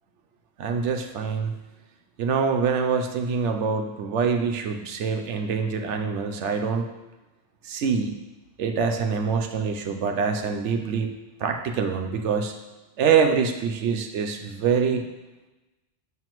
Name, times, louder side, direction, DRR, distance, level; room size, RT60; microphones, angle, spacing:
voice 1, 0.6-1.5 2.2-6.9 7.6-8.2 8.6-11.1 11.4-12.5 13.0-15.0, right 6 dB, 75° right, 5 dB, 1.0 m, -25 dB
7.6 x 5.8 x 3.0 m, 1.1 s
omnidirectional pair, 1.3 m